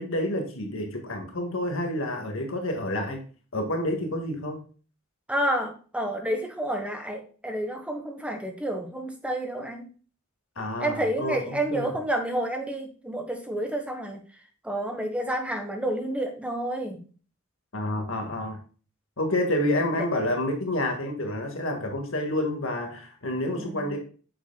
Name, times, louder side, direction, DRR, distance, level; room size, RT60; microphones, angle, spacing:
voice 1, 0.0-3.2 3.5-4.6 10.6-12.0 17.7-18.6 19.2-24.0, left 1 dB, 65° left, 3 dB, 1.8 m, -29 dB
voice 2, 5.3-9.9 10.8-14.2 14.6-17.0 23.5-24.0, right 1 dB, 5° right, 3 dB, 1.3 m, -30 dB
8.7 x 7.1 x 2.3 m, 0.39 s
head